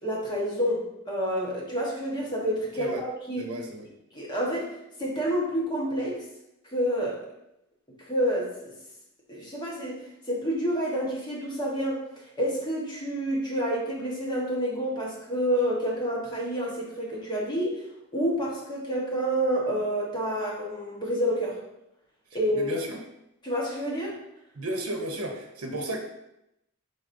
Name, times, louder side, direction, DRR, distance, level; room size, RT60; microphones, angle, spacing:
voice 1, 0.0-3.5 4.1-6.2 6.7-7.2 8.0-8.7 9.3-10.0 10.3-12.0 12.4-17.8 18.1-21.5 22.3-22.8 23.4-24.2, equal, 20° left, -4 dB, 1.1 m, -28 dB
voice 2, 3.4-3.9 22.5-23.0 24.6-26.0, right 1 dB, 85° right, 2 dB, 0.7 m, -33 dB
4.8 x 4.0 x 2.6 m, 0.84 s
head